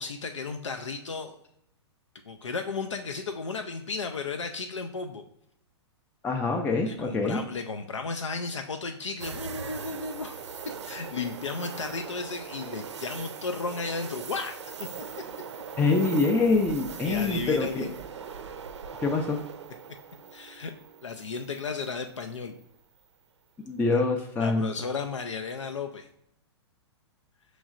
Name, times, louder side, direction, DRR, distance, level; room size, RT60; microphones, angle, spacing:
voice 1, 0.0-1.4 2.3-5.2 6.9-14.6 17.0-17.9 20.3-20.7 21.0-22.6 23.9-24.0 24.4-26.1, left 4 dB, 90° left, 5 dB, 0.4 m, -34 dB
voice 2, 6.2-7.4 15.8-17.8 19.0-19.4 23.7-24.7, left 3 dB, 10° left, 1 dB, 0.4 m, -25 dB
sound 1, 9.2-22.2 22.6-22.7 25.2-25.6, right 6 dB, 75° right, 0.5 m, -41 dB
6.1 x 3.1 x 2.4 m, 0.75 s
hypercardioid pair, 115°, 15 cm